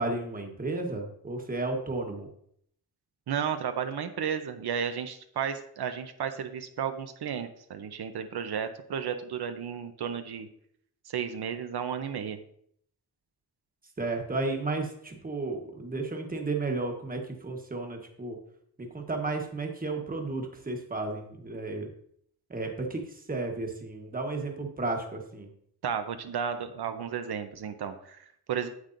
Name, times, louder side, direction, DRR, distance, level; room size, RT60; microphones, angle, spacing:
voice 1, 0.0-2.3 14.0-18.4 18.8-21.9 22.5-25.5, right 3 dB, 20° right, 2 dB, 1.2 m, -33 dB
voice 2, 3.3-10.5 11.1-12.4 25.8-28.7, right 7 dB, 85° right, 8 dB, 0.7 m, -33 dB
9.6 x 8.2 x 2.6 m, 0.68 s
wide cardioid pair, 165°, 38 cm